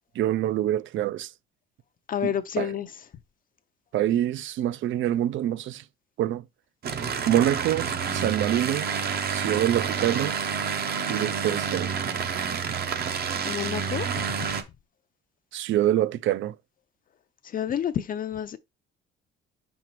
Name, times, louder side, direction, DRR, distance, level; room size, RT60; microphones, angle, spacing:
voice 1, 0.2-1.3 2.2-2.7 3.9-5.8 6.2-6.4 7.2-8.9 9.3-10.3 11.1-12.0 15.5-16.5, right 12 dB, 65° right, 0.4 m, -25 dB
voice 2, 2.1-2.9 13.4-14.3 17.4-18.6, left 9 dB, 45° left, 0.5 m, -29 dB
sound 1, 6.8-14.6, right 6 dB, 50° right, 0.8 m, -29 dB
5.7 x 5.4 x 3.0 m
cardioid pair, 130°, 21 cm